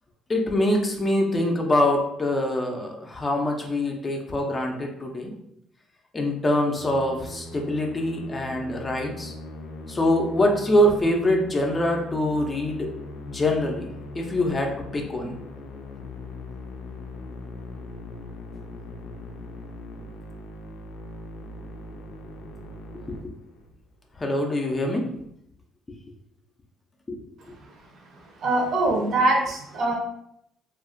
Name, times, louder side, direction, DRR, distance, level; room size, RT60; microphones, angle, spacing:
voice 1, 0.3-5.3 6.1-9.3 9.9-12.9 13.3-13.9 14.1-15.4 23.1-23.3 24.2-25.1 27.1-27.2 27.5-27.6, left 1 dB, 20° left, 1 dB, 0.4 m, -24 dB
Musical instrument, 6.7-23.9, left 2 dB, 90° left, 0.4 m, -40 dB
voice 2, 28.4-30.0, right 2 dB, 55° right, 0 dB, 0.7 m, -22 dB
2.7 x 2.4 x 2.5 m, 0.75 s
cardioid pair, 120°, 0 cm